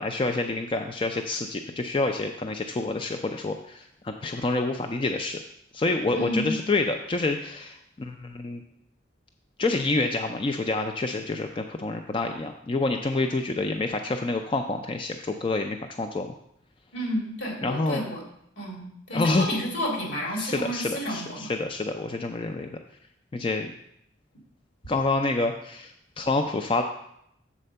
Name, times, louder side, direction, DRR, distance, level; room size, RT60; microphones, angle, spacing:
voice 1, 0.0-5.4 5.7-8.6 9.6-16.3 17.6-18.0 19.1-19.5 20.4-22.7 23.3-23.7 24.9-25.9 26.2-26.8, left 3 dB, 25° left, 5 dB, 0.4 m, -27 dB
voice 2, 6.1-6.6 16.9-18.2 18.6-21.5, equal, 70° left, -1 dB, 2.4 m, -30 dB
7.4 x 4.3 x 6.7 m, 0.75 s
head